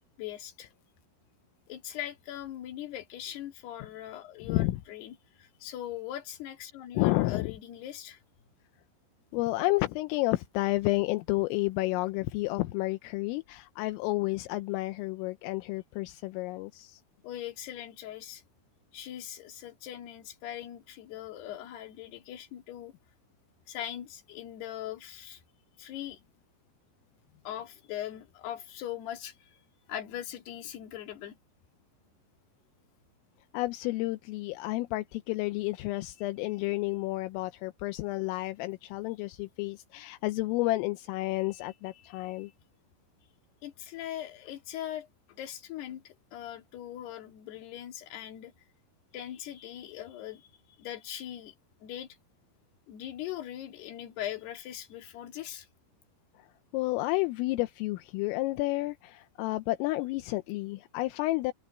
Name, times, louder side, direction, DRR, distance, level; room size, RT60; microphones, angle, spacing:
voice 1, 0.2-0.7 1.7-8.2 17.2-18.4 18.9-22.9 23.7-25.4 25.8-26.2 27.4-29.4 29.9-31.4 42.0-42.5 43.6-48.5 49.1-50.5 50.8-51.5 51.8-52.1 52.9-55.7, left 12 dB, 55° left, 4.2 m, -40 dB
voice 2, 4.4-4.8 7.0-7.5 9.3-17.0 33.5-42.5 56.4-56.5 56.7-61.5, left 19 dB, 85° left, 3.4 m, -31 dB
omnidirectional pair, 5.9 m